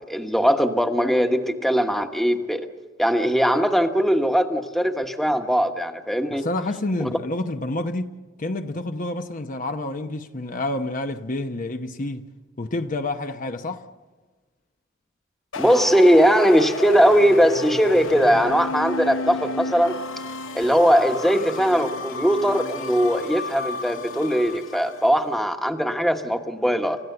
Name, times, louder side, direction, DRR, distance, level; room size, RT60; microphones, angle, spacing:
voice 1, 0.1-2.7 3.0-6.5 7.0-7.1 15.6-19.9 20.5-27.0, equal, ahead, 1.2 m, -20 dB
voice 2, 6.3-12.2 12.6-13.9, left 2 dB, 45° left, 0.9 m, -29 dB
sound 1, 15.5-25.2, left 3 dB, 85° left, 0.9 m, -32 dB
30.0 x 15.0 x 7.9 m
head